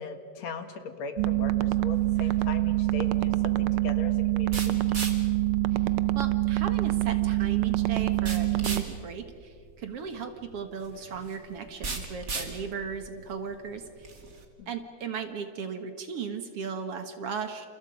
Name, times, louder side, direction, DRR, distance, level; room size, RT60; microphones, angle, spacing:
voice 1, 0.0-4.8 14.6-14.7, left 4 dB, 65° left, 7 dB, 2.7 m, -39 dB
sound 1, 1.2-8.8, right 16 dB, 80° right, 1.2 m, -25 dB
sound 2, 1.9-14.4, right 3 dB, 30° right, 2.4 m, -40 dB
voice 2, 6.2-13.8 14.7-17.7, right 6 dB, 55° right, 7 dB, 2.2 m, -36 dB
29.0 x 28.5 x 5.3 m, 2.2 s
omnidirectional pair, 3.3 m